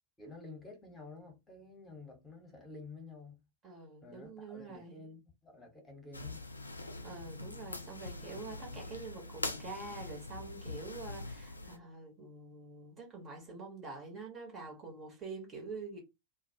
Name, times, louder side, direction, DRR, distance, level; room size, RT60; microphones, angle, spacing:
voice 1, 0.2-3.4 4.0-6.4, left 3 dB, 15° left, 1.0 m, -51 dB
voice 2, 3.6-5.0 7.0-16.0, right 3 dB, 25° right, 0.9 m, -46 dB
sound 1, 6.1-11.8, left 2 dB, 80° left, 0.3 m, -43 dB
2.3 x 2.1 x 2.7 m
figure-of-eight pair, 90°, 0 cm